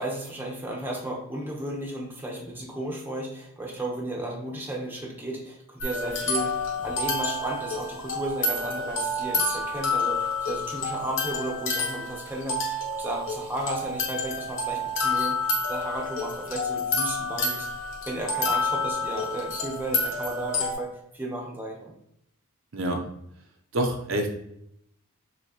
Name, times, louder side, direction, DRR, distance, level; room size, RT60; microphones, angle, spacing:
voice 1, 0.0-6.5 6.8-15.4 15.7-17.7 18.1-20.9 21.1-21.9, right 1 dB, 10° right, -2 dB, 0.8 m, -34 dB
sound 1, 5.8-20.7, left 2 dB, 55° left, 1.1 m, -29 dB
voice 2, 22.7-23.0 23.7-24.3, right 1 dB, 60° right, 2 dB, 0.7 m, -26 dB
6.1 x 2.8 x 2.8 m, 0.77 s
head